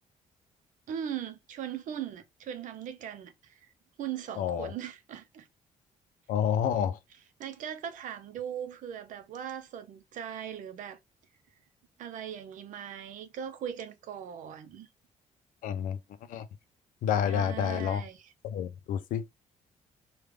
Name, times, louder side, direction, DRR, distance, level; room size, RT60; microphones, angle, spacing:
voice 1, 0.9-3.6 4.0-5.5 7.4-11.0 12.0-14.9 17.3-18.2, right 9 dB, 75° right, 0.6 m, -39 dB
voice 2, 4.4-4.7 6.3-7.0 15.6-16.0 16.3-16.5 17.0-18.0 18.4-19.2, left 8 dB, 80° left, 0.5 m, -29 dB
3.2 x 2.3 x 3.4 m
cardioid pair, 110°, 13 cm